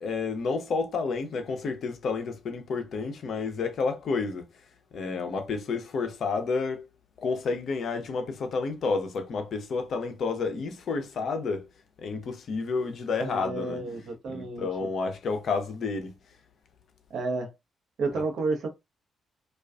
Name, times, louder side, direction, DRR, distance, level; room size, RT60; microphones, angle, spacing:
voice 1, 0.0-4.5 4.9-6.9 7.2-11.7 12.0-13.8 14.3-16.2 18.1-18.2, left 4 dB, 60° left, 0.5 m, -30 dB
voice 2, 13.2-14.9 17.1-17.5 18.0-18.7, right 3 dB, 60° right, 0.7 m, -31 dB
2.3 x 2.3 x 2.3 m
hypercardioid pair, 40°, 0 cm